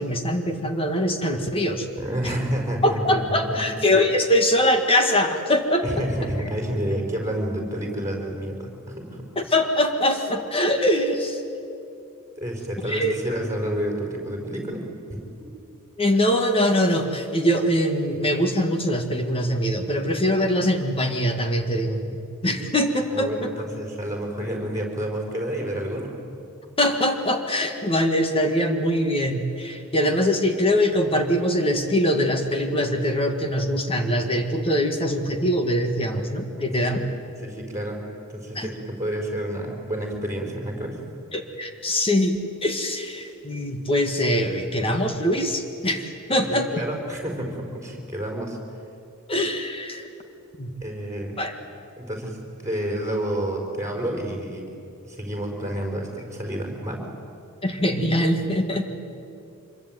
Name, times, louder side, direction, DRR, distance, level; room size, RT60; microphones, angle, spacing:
voice 1, 0.0-1.9 2.2-2.3 2.8-5.9 9.3-11.4 12.9-13.2 16.0-23.5 26.8-37.0 38.5-38.7 41.3-46.7 49.3-50.1 50.6-50.7 51.4-51.5 57.6-58.8, equal, 25° left, 5 dB, 1.8 m, -23 dB
voice 2, 2.0-3.0 3.5-3.6 5.8-9.2 12.4-15.2 23.1-26.2 36.5-37.0 37.4-38.0 38.3-41.0 46.5-48.6 50.8-51.4 52.0-54.6 55.0-57.0, right 1 dB, 15° right, 1 dB, 5.1 m, -29 dB
25.5 x 22.5 x 9.2 m, 2.6 s
head